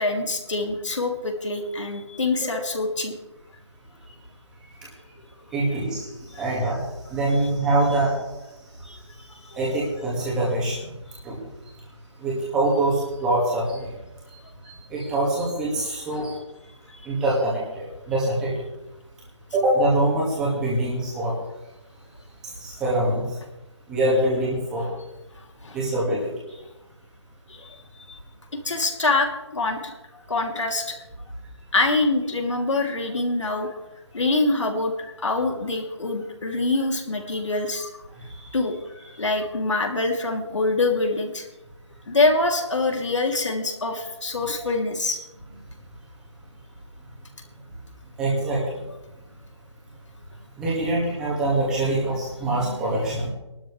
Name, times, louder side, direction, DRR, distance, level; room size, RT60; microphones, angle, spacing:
voice 1, 0.0-3.2 8.8-9.0 9.3-9.6 16.9-17.0 25.6-25.8 27.5-27.7 28.1-28.2 28.5-29.9 30.3-31.0 31.7-33.7 34.1-34.9 35.2-38.0 38.5-38.8 39.2-41.4 42.1-45.2, left 2 dB, 80° left, 2 dB, 3.1 m, -25 dB
voice 2, 5.5-6.1 6.4-6.8 7.1-8.1 9.5-10.8 11.2-11.4 12.2-13.9 14.7-16.3 17.1-18.5 19.5-21.3 22.6-23.2 23.9-24.9 25.7-26.3 38.4-38.6 48.2-48.6 50.6-53.3, right 1 dB, 5° right, -6 dB, 1.9 m, -24 dB
20.5 x 12.5 x 3.3 m, 0.98 s
hypercardioid pair, 180°, 15 cm